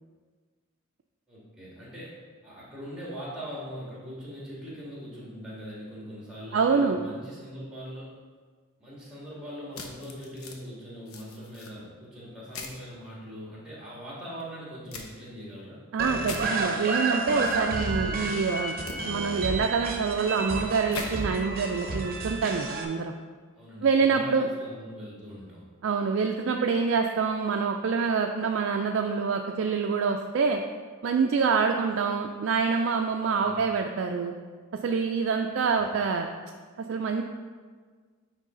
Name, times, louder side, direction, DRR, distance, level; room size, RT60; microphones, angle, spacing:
voice 1, 1.3-8.1 8.8-15.8 23.6-25.6 33.4-33.6 35.7-35.9, equal, 5° right, -6 dB, 1.8 m, -41 dB
voice 2, 6.5-7.0 15.9-18.7 19.0-23.1 23.8-24.5 25.8-30.6 31.0-34.3 34.8-36.3 36.8-37.2, right 5 dB, 60° right, 3 dB, 0.3 m, -26 dB
sound 1, 9.7-10.6 11.1-11.7 12.5-12.8 14.9-15.1 16.2-16.4 18.9-19.0 20.9-21.1, left 4 dB, 80° left, 0.7 m, -39 dB
sound 2, 16.0-22.8, right 3 dB, 45° right, 0.8 m, -31 dB
9.3 x 3.3 x 3.8 m, 1.5 s
head